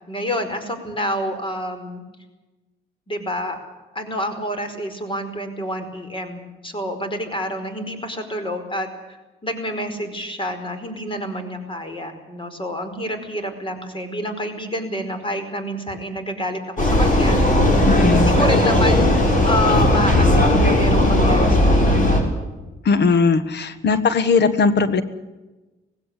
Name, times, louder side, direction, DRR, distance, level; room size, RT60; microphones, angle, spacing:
voice 1, 0.1-2.0 3.1-3.6 3.9-9.2 9.4-17.4 18.1-19.1 19.4-22.2, equal, 25° left, 8 dB, 4.9 m, -28 dB
Vehicle, 16.8-22.2, left 1 dB, 40° left, 6.8 m, -16 dB
voice 2, 17.9-18.3 22.8-25.0, left 4 dB, 60° left, 13 dB, 1.5 m, -18 dB
19.0 x 16.5 x 9.8 m, 1.1 s
cardioid pair, 90°, 20 cm